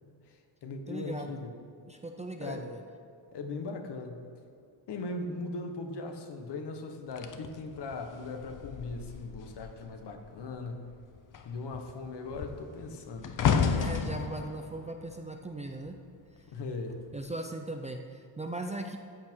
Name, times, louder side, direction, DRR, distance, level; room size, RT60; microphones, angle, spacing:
voice 1, 0.3-1.5 2.4-2.7 3.3-4.4 4.9-10.9 11.4-13.3 16.5-17.1, left 3 dB, 60° left, 5 dB, 1.3 m, -39 dB
voice 2, 0.9-1.4 1.9-2.8 13.8-16.0 17.1-19.0, right 2 dB, 15° right, 3 dB, 0.5 m, -38 dB
sound 1, 7.2-9.9 10.2-10.5 10.9-16.2 16.9-17.2, left 6 dB, 45° left, 0.7 m, -33 dB
14.0 x 8.5 x 4.6 m, 2.5 s
wide cardioid pair, 165°, 46 cm